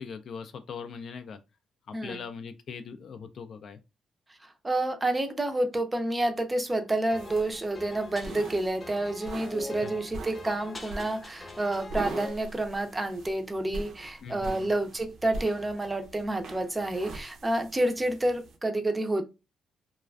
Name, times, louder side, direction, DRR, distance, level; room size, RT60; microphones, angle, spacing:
voice 1, 0.0-1.4 1.9-3.8 9.8-9.9 14.2-14.7, left 6 dB, 60° left, 0.3 m, -41 dB
voice 2, 1.9-2.2 4.6-19.2, right 1 dB, 20° right, 0.4 m, -29 dB
sound 1, 7.1-12.3, left 2 dB, 25° left, 0.7 m, -42 dB
sound 2, 7.2-18.6, right 2 dB, 70° right, 0.5 m, -43 dB
2.3 x 2.3 x 2.2 m
cardioid pair, 90°, 0 cm